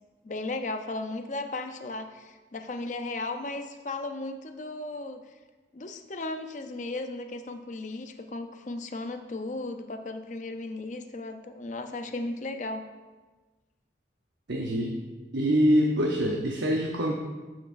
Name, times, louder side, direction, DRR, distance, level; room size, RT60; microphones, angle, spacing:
voice 1, 0.2-5.2 5.7-12.9, left 2 dB, 40° left, 7 dB, 0.6 m, -35 dB
voice 2, 14.5-14.9 15.3-17.1, equal, 80° right, -1 dB, 0.8 m, -24 dB
14.0 x 6.0 x 2.6 m, 1.3 s
head